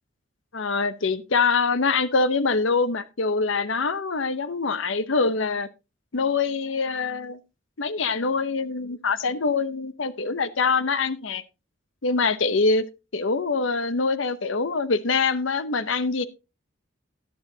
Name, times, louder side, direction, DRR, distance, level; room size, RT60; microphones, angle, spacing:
voice 1, 0.5-5.7 6.1-7.4 7.8-11.4 12.0-12.8 13.1-16.2, left 4 dB, 70° left, 0.8 m, -24 dB
11.5 x 11.0 x 2.7 m
head